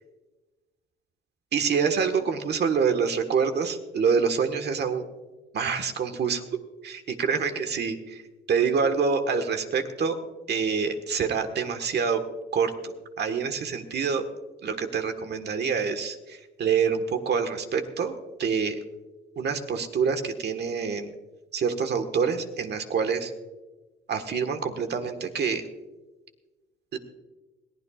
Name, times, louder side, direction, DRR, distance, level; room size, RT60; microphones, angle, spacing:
voice 1, 1.5-5.0 5.5-6.4 6.8-8.2 8.5-10.2 10.5-12.2 12.5-14.2 14.6-18.8 19.3-21.1 21.5-23.3 24.1-25.6 26.9-27.0, right 6 dB, 60° right, 7 dB, 1.5 m, -26 dB
21.5 x 15.5 x 2.4 m, 1.2 s
cardioid pair, 90°, 20 cm